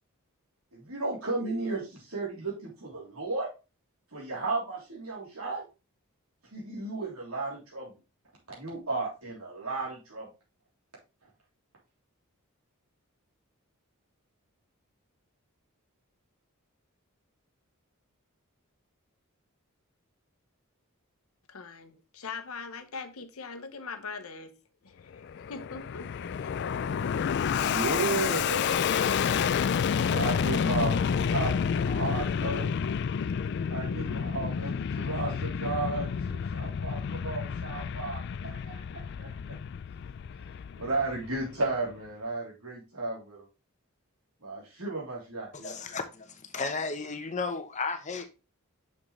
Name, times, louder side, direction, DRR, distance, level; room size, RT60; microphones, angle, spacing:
voice 1, 0.7-3.5 4.1-5.6 6.5-7.9 8.5-10.3 27.6-28.8 30.0-32.7 33.7-38.8 39.2-39.3 40.8-43.4 44.4-45.7, right 3 dB, 75° right, 3.3 m, -34 dB
voice 2, 21.5-26.1 26.4-26.5, left 5 dB, 70° left, 0.9 m, -42 dB
Fixed-wing aircraft airplane, 25.1-41.7, left 7 dB, 50° left, 0.3 m, -30 dB
voice 3, 45.5-48.3, left 4 dB, 30° left, 0.8 m, -34 dB
6.6 x 6.2 x 3.2 m
head